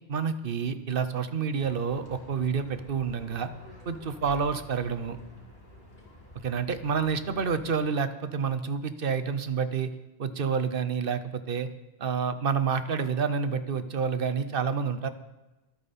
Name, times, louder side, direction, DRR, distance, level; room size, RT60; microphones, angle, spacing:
voice 1, 0.1-3.5 3.8-5.2 6.3-9.9 10.2-11.7 12.0-15.1, right 6 dB, 60° right, 11 dB, 1.0 m, -29 dB
Livestock farm animals working animals, 1.6-7.6, left 1 dB, 65° left, 3.6 m, -50 dB
23.0 x 8.9 x 4.3 m, 1.0 s
omnidirectional pair, 1.1 m